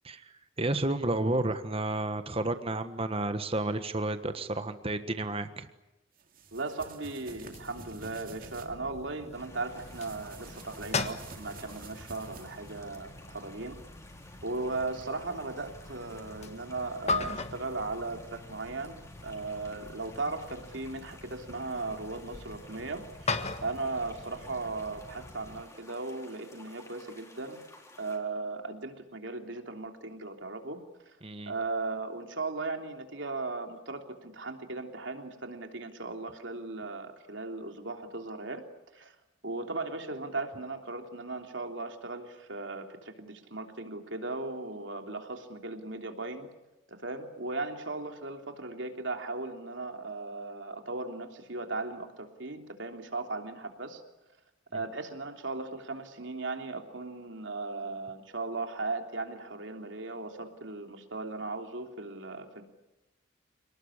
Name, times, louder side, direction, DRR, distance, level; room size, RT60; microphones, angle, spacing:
voice 1, 0.0-5.7 31.2-31.5, right 2 dB, 30° right, 9 dB, 1.4 m, -31 dB
sound 1, 6.2-8.7 9.7-12.8, right 4 dB, 45° right, 2.7 m, -50 dB
voice 2, 6.5-13.8 14.4-27.6 28.0-30.8 31.0-31.2 31.5-38.6 38.9-39.1 39.4-46.5 46.9-54.0 54.7-62.6, right 3 dB, 75° right, 5 dB, 3.2 m, -37 dB
sound 2, 7.3-25.6, left 3 dB, 35° left, 1.5 m, -40 dB
sound 3, 9.3-28.2, left 2 dB, 15° left, 4.2 m, -54 dB
28.5 x 19.5 x 9.9 m, 0.97 s
head